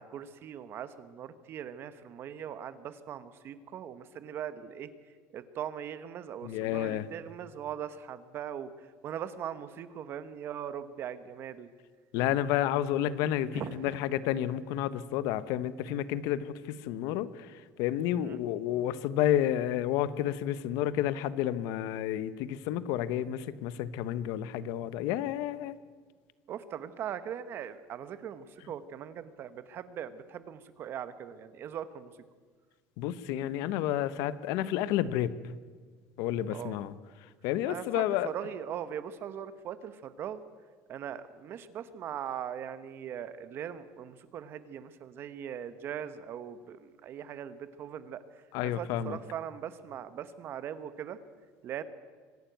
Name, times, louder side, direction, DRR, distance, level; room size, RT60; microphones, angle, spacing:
voice 1, 0.0-4.9 5.3-8.7 9.0-11.7 13.5-13.8 18.2-18.4 26.5-32.1 36.5-36.8 37.6-40.4 40.9-48.2 48.6-51.2 51.6-51.8, right 9 dB, 40° right, 13 dB, 1.1 m, -40 dB
voice 2, 6.4-7.1 12.1-17.5 17.8-25.7 33.0-35.3 36.2-36.9 37.4-38.3 48.5-49.2, left 12 dB, 75° left, 15 dB, 1.0 m, -30 dB
24.5 x 11.5 x 9.2 m, 1.5 s
cardioid pair, 165°, 6 cm